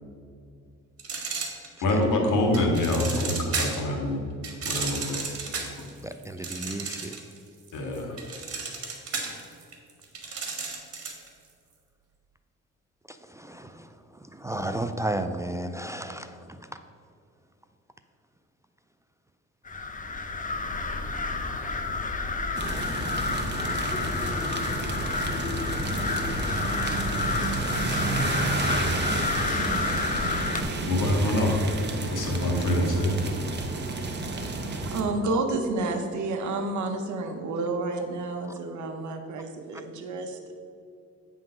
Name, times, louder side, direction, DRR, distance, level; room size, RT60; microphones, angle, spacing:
sound 1, 1.0-2.0 2.5-3.9 4.4-7.4 7.7-11.3, right 4 dB, 50° right, 1.6 m, -33 dB
voice 1, 1.8-4.2 4.6-5.2 7.7-8.2 30.8-33.1, left 1 dB, 85° left, 1 dB, 1.6 m, -25 dB
voice 2, 6.0-7.2 13.1-13.9 14.3-16.8 25.5-25.6, right 1 dB, 10° right, 8 dB, 0.3 m, -33 dB
sound 2, 19.7-30.6, left 3 dB, 25° left, 0.7 m, -29 dB
sound 3, 22.5-35.0, right 3 dB, 35° right, 1.0 m, -31 dB
voice 3, 34.8-40.6, right 2 dB, 70° right, 5 dB, 1.1 m, -30 dB
8.6 x 3.8 x 6.2 m, 2.4 s
cardioid pair, 90°, 30 cm